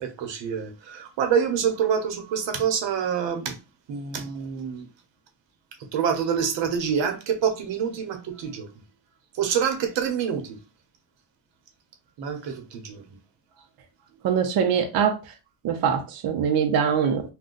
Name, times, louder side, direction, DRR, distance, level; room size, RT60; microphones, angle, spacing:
voice 1, 0.0-3.6 3.9-4.9 5.9-8.7 9.3-10.6 12.2-13.0, right 7 dB, 85° right, 0.9 m, -26 dB
voice 2, 14.2-15.2 15.6-17.2, right 7 dB, 55° right, 0.6 m, -23 dB
2.5 x 2.3 x 3.7 m
cardioid pair, 145°, 43 cm